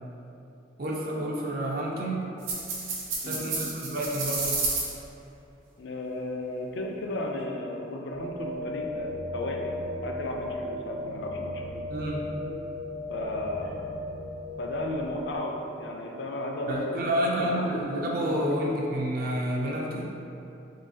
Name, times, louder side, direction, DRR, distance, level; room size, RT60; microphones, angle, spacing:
voice 1, 0.8-2.3 3.3-4.6 11.9-12.4 16.7-20.1, right 1 dB, 50° right, -2 dB, 0.4 m, -29 dB
sound 1, 2.4-4.9, right 3 dB, 90° right, 0.8 m, -31 dB
voice 2, 3.2-3.7 5.8-11.8 13.1-13.8 14.6-17.7 18.2-18.6, left 1 dB, 65° left, 1 dB, 0.4 m, -34 dB
sound 2, 8.1-15.4, left 1 dB, 85° left, 0.8 m, -36 dB
3.7 x 3.1 x 2.7 m, 2.8 s
head